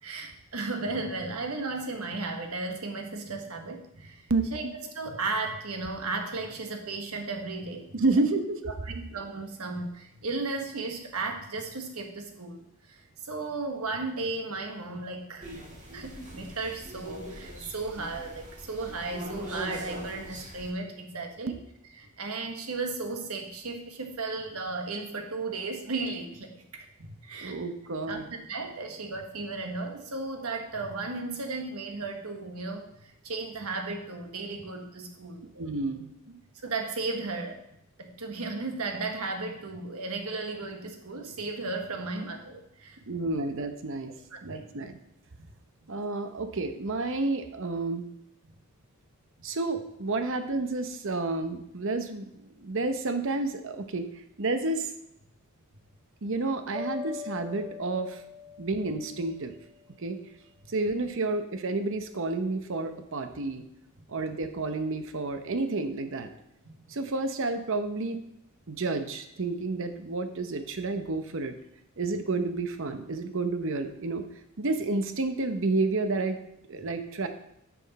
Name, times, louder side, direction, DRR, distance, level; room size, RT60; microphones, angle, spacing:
voice 1, 0.0-7.9 8.7-15.5 15.9-21.6 22.0-27.6 28.1-35.5 36.6-37.6 38.0-43.0 43.4-43.5 44.3-44.7 45.4-45.5 66.6-66.7, right 3 dB, 80° right, 4 dB, 1.4 m, -35 dB
voice 2, 4.3-4.7 7.9-8.6 21.5-21.6 27.3-28.3 35.6-36.4 43.1-44.1 44.4-45.0 45.9-48.1 49.4-54.1 54.4-54.9 56.2-58.2 58.6-59.5 60.0-60.2 60.7-63.6 64.1-66.3 66.9-68.2 68.7-71.6 72.0-74.2 74.6-76.4 76.7-77.3, right 3 dB, 60° right, 8 dB, 0.8 m, -30 dB
sound 1, 15.4-20.7, equal, 35° right, 1.8 m, -42 dB
sound 2, 56.7-59.8, left 6 dB, 10° right, 0.7 m, -41 dB
10.0 x 6.2 x 4.2 m, 0.77 s
head